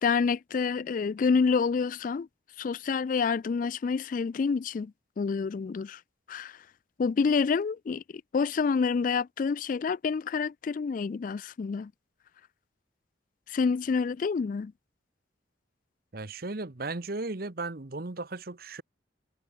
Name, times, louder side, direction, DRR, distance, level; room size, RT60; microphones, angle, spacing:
voice 1, 0.0-2.3 2.6-4.9 5.2-6.0 6.3-6.6 7.0-8.0 8.3-11.9 13.5-14.7, left 5 dB, 45° left, 0.3 m, -28 dB
voice 2, 16.1-18.8, right 3 dB, 55° right, 1.1 m, -36 dB
head